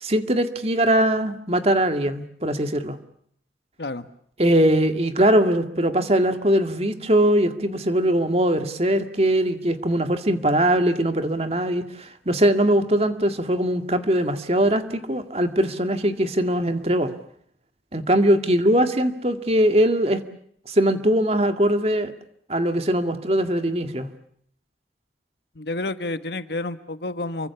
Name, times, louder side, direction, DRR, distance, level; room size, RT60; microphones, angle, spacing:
voice 1, 0.0-3.0 4.4-17.1 17.9-20.2 20.7-22.1 22.5-24.1, right 1 dB, 35° right, 8 dB, 2.1 m, -21 dB
voice 2, 25.5-27.5, left 2 dB, 70° left, 11 dB, 1.5 m, -30 dB
29.0 x 24.0 x 7.1 m, 0.65 s
head